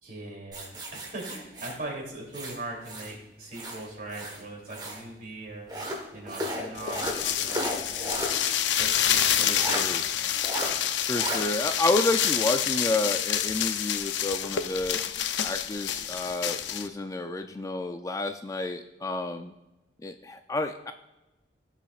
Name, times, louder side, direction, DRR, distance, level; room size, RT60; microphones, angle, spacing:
voice 1, 0.0-5.8 6.1-8.3 8.8-10.2, right 2 dB, 50° right, -2 dB, 2.9 m, -40 dB
sound 1, 0.5-3.2 3.5-5.1 5.7-8.4 8.8-8.9 9.6-9.9 10.4-10.7 11.2-11.4, equal, 25° right, 1.3 m, -34 dB
sound 2, 6.8-16.9, left 10 dB, 75° left, 0.5 m, -28 dB
voice 2, 9.5-10.0 11.0-15.0 15.4-19.5 20.0-20.9, left 2 dB, 20° left, 7 dB, 0.3 m, -30 dB
16.0 x 5.8 x 2.4 m, 1.0 s
head